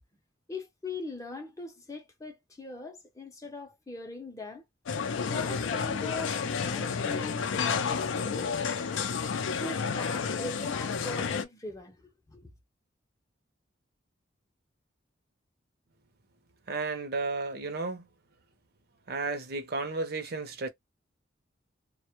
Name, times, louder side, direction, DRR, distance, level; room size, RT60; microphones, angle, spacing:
voice 1, 0.5-4.6 5.3-8.5 9.6-12.5, left 3 dB, 15° left, 0.5 m, -40 dB
sound 1, 4.9-11.4, left 6 dB, 75° left, 0.4 m, -31 dB
voice 2, 16.7-18.1 19.1-20.7, right 3 dB, 55° right, 0.6 m, -33 dB
2.1 x 2.0 x 2.9 m
head